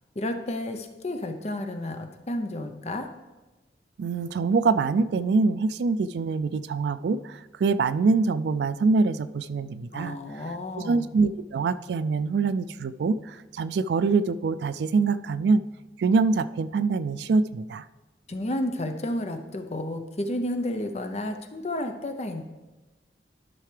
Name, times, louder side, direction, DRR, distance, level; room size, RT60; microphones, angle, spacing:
voice 1, 0.2-3.1 9.9-11.1 18.3-22.4, left 1 dB, 40° left, 7 dB, 0.6 m, -31 dB
voice 2, 4.0-10.2 10.8-15.6 16.0-17.9, right 4 dB, 75° right, 14 dB, 0.3 m, -24 dB
12.5 x 5.6 x 3.3 m, 1.2 s
head